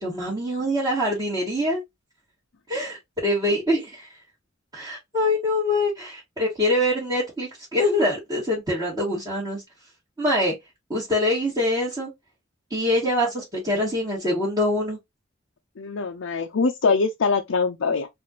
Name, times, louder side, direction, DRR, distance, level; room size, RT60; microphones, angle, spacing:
voice 1, 0.0-1.8 2.7-4.1 4.7-9.6 10.2-10.5 10.9-12.1 12.7-15.0, left 1 dB, 20° right, 1.9 m, -24 dB
voice 2, 15.8-18.1, left 4 dB, 75° left, 0.5 m, -23 dB
4.0 x 2.5 x 2.9 m
head